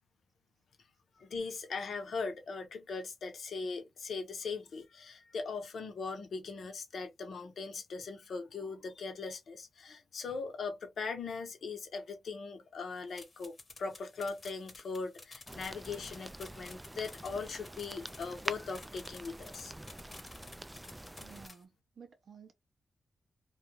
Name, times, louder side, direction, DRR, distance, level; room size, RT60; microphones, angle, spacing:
voice 1, 1.2-19.7 20.8-20.9, left 4 dB, 75° left, 0.8 m, -40 dB
sound 1, 13.1-21.6, left 3 dB, 45° left, 1.0 m, -53 dB
sound 2, 15.5-21.5, right 1 dB, 15° right, 0.3 m, -45 dB
voice 2, 21.1-22.5, right 6 dB, 70° right, 0.5 m, -54 dB
2.3 x 2.3 x 2.9 m
cardioid pair, 55°, 0 cm